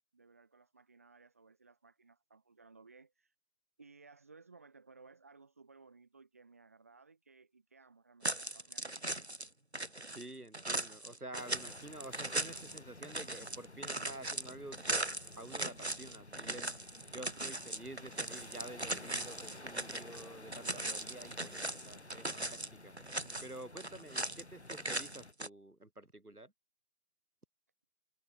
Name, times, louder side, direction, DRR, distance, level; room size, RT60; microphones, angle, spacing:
voice 1, 0.0-3.3 3.8-9.3, right 4 dB, 10° right, 3.5 m, -60 dB
sound 1, 8.2-9.5 9.7-20.2 20.5-22.7 23.0-24.4 24.7-25.5, right 1 dB, 45° right, 0.6 m, -39 dB
voice 2, 10.1-15.0 15.3-16.7 17.1-22.9 23.4-26.5, right 1 dB, 75° right, 6.9 m, -49 dB
sound 2, 11.3-25.3, left 2 dB, 45° left, 3.8 m, -53 dB
figure-of-eight pair, 170°, 45 cm